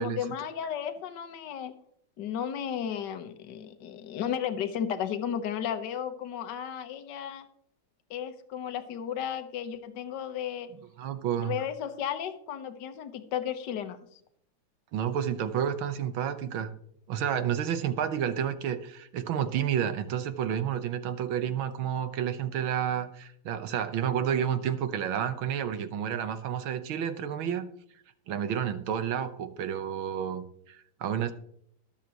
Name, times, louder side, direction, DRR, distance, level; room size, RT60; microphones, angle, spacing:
voice 1, 0.0-1.7 2.2-7.5 8.1-10.7 11.4-14.0, left 9 dB, 60° left, 8 dB, 1.6 m, -34 dB
voice 2, 11.0-11.5 14.9-16.7 17.1-27.7 28.3-31.3, right 9 dB, 75° right, 10 dB, 1.8 m, -30 dB
22.0 x 7.4 x 3.0 m, 0.67 s
omnidirectional pair, 2.3 m